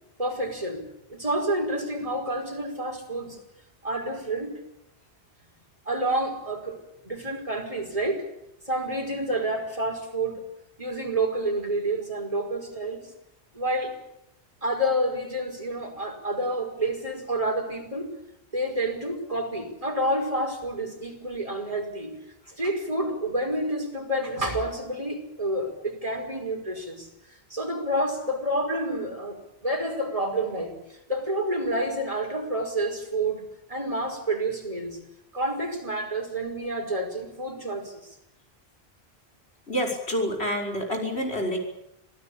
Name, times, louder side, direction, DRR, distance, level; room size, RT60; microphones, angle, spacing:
voice 1, 0.2-3.4 3.8-4.5 5.9-6.8 7.0-8.2 8.7-10.4 10.8-13.0 13.5-13.9 14.6-18.1 18.5-22.2 22.5-27.1 27.5-35.0 35.3-38.2, right 1 dB, 35° right, 3 dB, 5.3 m, -29 dB
voice 2, 39.7-41.6, equal, 80° left, 1 dB, 6.2 m, -28 dB
27.0 x 17.5 x 8.8 m, 0.84 s
omnidirectional pair, 1.1 m